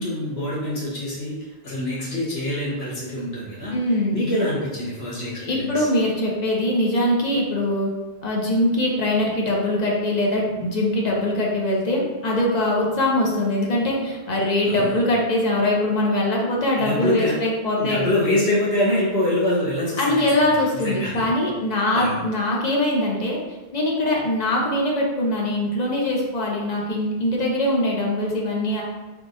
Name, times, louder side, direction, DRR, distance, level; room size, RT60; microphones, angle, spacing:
voice 1, 0.0-1.3 1.6-3.8 4.1-5.7 14.7-14.9 16.8-17.3 17.8-20.2 20.8-21.1 21.9-22.2, left 1 dB, 80° left, -8 dB, 1.4 m, -24 dB
voice 2, 3.7-4.3 5.4-7.9 8.2-18.1 20.0-23.4 23.7-28.8, left 1 dB, 50° left, -3 dB, 0.7 m, -22 dB
3.6 x 3.1 x 2.5 m, 1.2 s
omnidirectional pair, 1.0 m